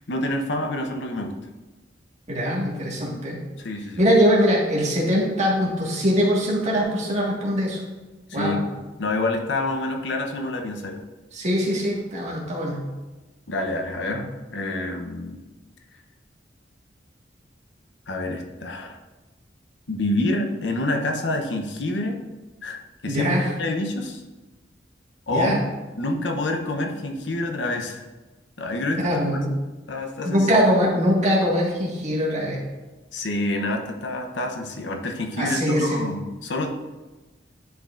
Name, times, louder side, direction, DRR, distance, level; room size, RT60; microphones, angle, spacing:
voice 1, 0.0-1.3 3.6-4.0 8.3-11.0 13.5-14.2 14.5-15.4 18.1-19.0 19.9-22.2 22.6-23.3 23.6-24.2 25.3-25.5 26.0-28.1 28.6-29.3 29.9-30.5 33.1-36.7, left 2 dB, 75° left, 3 dB, 0.8 m, -27 dB
voice 2, 2.3-3.4 4.0-7.8 8.3-8.6 11.3-12.8 23.1-23.4 25.3-25.6 29.0-29.5 30.2-32.6 35.4-36.1, equal, 40° right, -4 dB, 1.7 m, -22 dB
10.5 x 4.7 x 2.5 m, 1.2 s
head